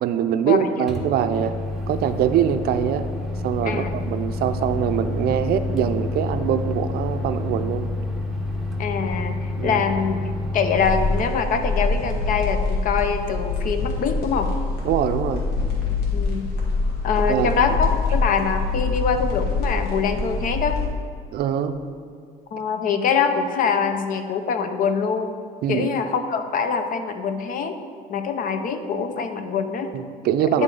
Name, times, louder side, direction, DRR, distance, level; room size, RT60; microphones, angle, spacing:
voice 1, 0.0-1.5 1.9-3.1 3.4-7.9 9.6-9.8 14.8-15.4 17.3-17.5 21.3-21.8 25.6-25.9 29.9-30.6, right 9 dB, 65° right, 9 dB, 0.4 m, -23 dB
Microwave oven, 0.9-11.2, left 2 dB, ahead, 0.8 m, -28 dB
voice 2, 3.6-4.0 8.8-10.2 10.5-14.5 16.1-16.5 17.0-20.8 22.5-25.3 25.7-27.8 28.1-29.9 30.4-30.6, left 6 dB, 55° left, 8 dB, 0.6 m, -24 dB
sound 1, 10.7-20.9, left 3 dB, 70° left, 1.6 m, -25 dB
9.9 x 3.6 x 3.9 m, 2.2 s
cardioid pair, 110°, 17 cm